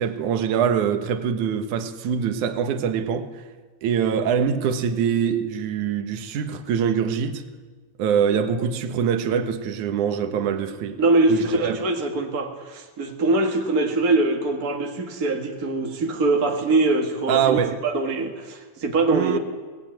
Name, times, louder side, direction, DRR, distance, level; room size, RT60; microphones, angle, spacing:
voice 1, 0.0-3.4 3.8-7.4 8.0-11.0 11.3-11.8 17.3-17.8 19.1-19.4, right 7 dB, 75° right, 2.7 m, -24 dB
voice 2, 11.0-19.4, right 2 dB, 35° right, 1.8 m, -23 dB
23.5 x 19.0 x 9.1 m
omnidirectional pair, 3.6 m